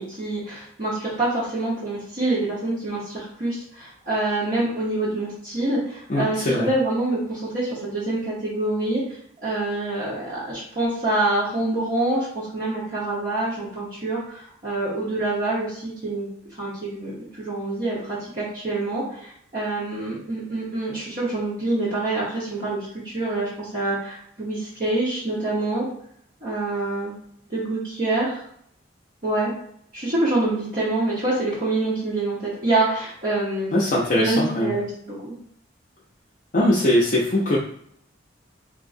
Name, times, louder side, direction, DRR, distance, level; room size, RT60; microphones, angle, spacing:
voice 1, 0.0-9.0 9.4-16.3 16.6-25.9 26.4-27.1 27.5-28.4 29.2-29.5 29.9-33.7 34.1-35.3, right 2 dB, 45° right, -9 dB, 1.0 m, -26 dB
voice 2, 6.1-6.7 33.7-34.7 36.5-37.6, left 1 dB, 45° left, -4 dB, 0.5 m, -21 dB
3.7 x 2.7 x 2.5 m, 0.68 s
head